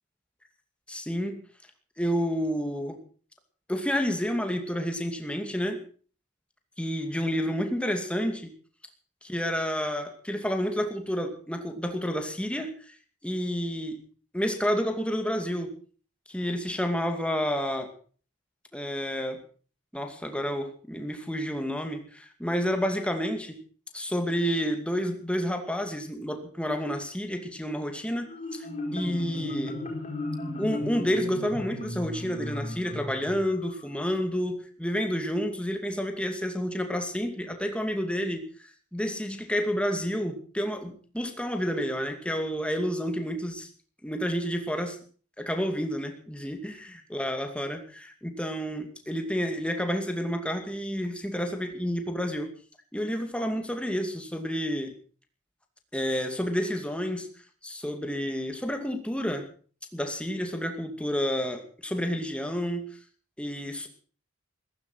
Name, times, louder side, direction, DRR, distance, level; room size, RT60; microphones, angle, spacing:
voice 1, 0.9-1.4 2.0-3.0 3.7-5.8 6.8-8.5 9.2-12.9 13.2-14.0 14.3-15.7 16.3-17.9 18.7-19.4 19.9-23.6 23.9-28.7 28.9-29.8 30.6-43.7 44.0-45.0 45.4-46.8 47.1-52.5 52.9-54.9 55.9-57.3 57.6-59.5 59.9-62.9 63.4-63.9, equal, 5° left, 5 dB, 2.4 m, -30 dB
Marimba xylophone, 28.3-33.8, left 1 dB, 30° left, 4.7 m, -35 dB
15.0 x 14.5 x 6.3 m, 0.43 s
head